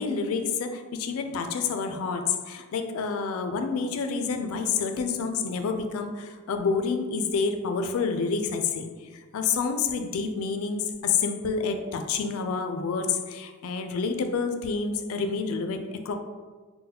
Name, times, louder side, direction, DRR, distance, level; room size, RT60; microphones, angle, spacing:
voice 1, 0.0-16.1, left 5 dB, 70° left, 6 dB, 0.3 m, -28 dB
3.9 x 2.1 x 2.8 m, 1.4 s
head